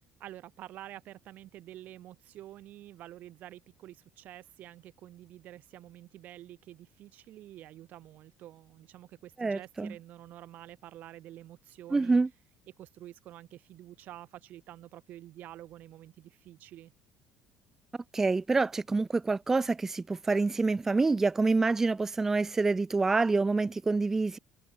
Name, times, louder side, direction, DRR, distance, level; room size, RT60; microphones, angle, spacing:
voice 1, 0.2-12.2 12.8-16.9, right 13 dB, 45° right, 7.0 m, -48 dB
voice 2, 9.4-9.9 11.9-12.3 18.1-24.4, right 3 dB, 10° right, 0.4 m, -27 dB
cardioid pair, 180°, 4 cm